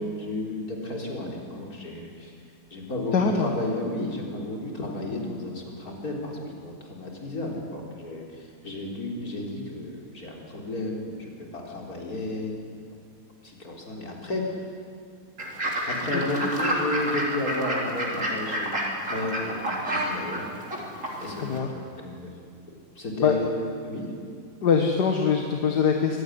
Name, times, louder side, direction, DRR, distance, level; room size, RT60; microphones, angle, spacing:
voice 1, 0.0-2.3 2.7-12.8 13.4-14.6 15.9-20.5 21.2-22.3 23.0-23.5 23.8-24.1, left 1 dB, 65° left, -1 dB, 4.3 m, -33 dB
voice 2, 3.1-3.5 16.1-16.3 21.4-21.7 23.2-23.4 24.6-26.2, left 6 dB, 80° left, 3 dB, 2.1 m, -23 dB
Fowl / Bird, 15.4-21.6, right 1 dB, 50° right, 3.8 m, -30 dB
24.0 x 16.5 x 9.8 m, 2.2 s
omnidirectional pair, 1.7 m